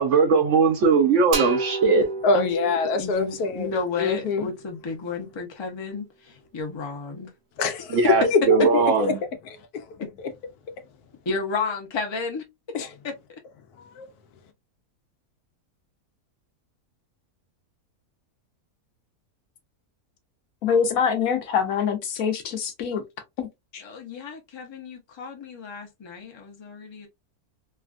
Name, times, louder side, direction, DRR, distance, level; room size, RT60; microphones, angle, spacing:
voice 1, 0.0-2.1 7.9-9.2, right 5 dB, 65° right, 0.8 m, -19 dB
sound 1, 1.3-5.0, right 3 dB, 85° right, 1.3 m, -33 dB
voice 2, 2.2-3.7 4.0-4.5 7.6-9.2 9.4-9.9 12.7-12.9 13.9-14.1, left 4 dB, 90° left, 1.1 m, -24 dB
voice 3, 3.0-7.3 10.0-10.1 11.3-12.4 23.8-27.1, left 4 dB, 30° left, 0.5 m, -32 dB
voice 4, 20.6-23.0 23.4-23.5 23.7-23.8, left 7 dB, 70° left, 1.1 m, -24 dB
3.3 x 2.2 x 2.4 m
omnidirectional pair, 1.6 m